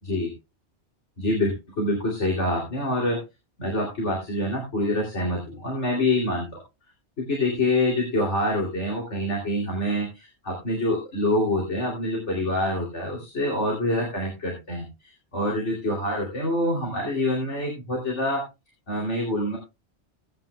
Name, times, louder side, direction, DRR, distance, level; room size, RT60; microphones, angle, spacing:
voice 1, 1.2-3.2 3.6-6.6 7.2-18.4 18.9-19.6, left 1 dB, 85° left, 0 dB, 3.3 m, -26 dB
17.5 x 9.4 x 2.2 m, 0.25 s
omnidirectional pair, 1.2 m